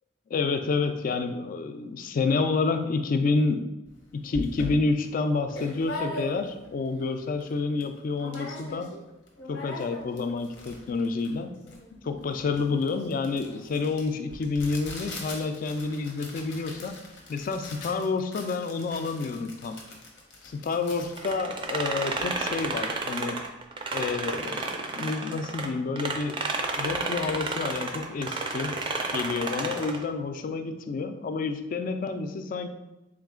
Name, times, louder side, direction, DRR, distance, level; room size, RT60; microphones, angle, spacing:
voice 1, 0.3-3.7 4.1-9.0 9.5-11.5 12.0-17.0 17.3-19.8 20.4-23.4 23.9-26.4 26.8-28.8 29.1-32.7, left 4 dB, 50° left, 7 dB, 0.3 m, -29 dB
sound 1, 3.9-4.0 4.3-6.7 7.1-7.2 7.4-7.9 8.2-9.0 9.3-22.3, left 1 dB, 90° left, 0.8 m, -40 dB
sound 2, 21.2-25.7 26.0-30.0, right 3 dB, 30° right, 0.4 m, -31 dB
3.6 x 2.4 x 3.6 m, 0.96 s
head